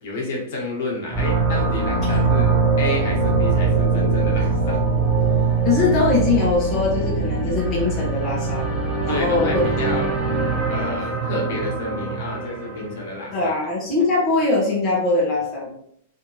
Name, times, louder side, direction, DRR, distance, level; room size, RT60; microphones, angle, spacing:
voice 1, 0.0-4.8 5.2-5.6 7.4-7.5 9.1-10.1 10.7-13.6, left 2 dB, 60° left, -2 dB, 1.5 m, -30 dB
sound 1, 1.1-13.0, right 4 dB, 5° left, 1.0 m, -22 dB
voice 2, 5.6-9.6 13.3-15.8, left 3 dB, 25° left, -5 dB, 1.2 m, -22 dB
3.3 x 2.7 x 3.1 m, 0.69 s
hypercardioid pair, 135°, 0 cm